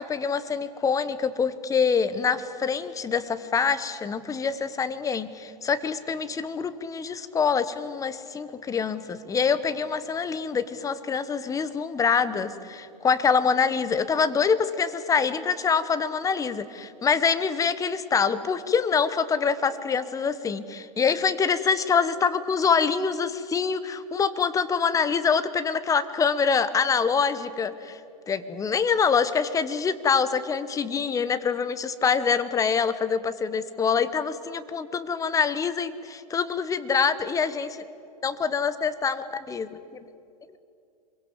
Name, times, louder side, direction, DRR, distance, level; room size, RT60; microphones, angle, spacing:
voice 1, 0.0-28.0 28.3-37.8 38.2-39.8, left 6 dB, 15° left, 13 dB, 1.1 m, -25 dB
25.5 x 22.5 x 8.2 m, 2.6 s
hypercardioid pair, 120°, 21 cm